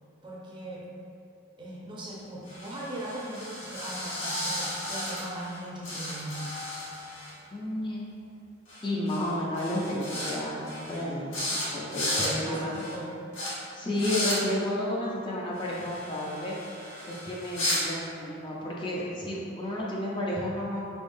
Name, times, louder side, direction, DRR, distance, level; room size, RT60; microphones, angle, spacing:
voice 1, 0.2-0.9 1.6-6.5 11.8-13.1, right 1 dB, 25° right, -5 dB, 0.6 m, -39 dB
sound 1, 2.5-5.6 5.8-7.3 8.7-8.8 9.1-9.3 9.6-10.3 10.6-11.0 11.3-11.6 11.9-12.3 12.7-12.9 13.3-13.5 13.9-14.4 15.6-17.8, left 1 dB, 75° left, 1.4 m, -34 dB
voice 2, 7.5-8.0 8.8-11.4 11.7-12.7 13.7-16.6 17.1-20.8, left 1 dB, 25° left, -5 dB, 0.4 m, -31 dB
4.2 x 3.5 x 2.6 m, 2.6 s
head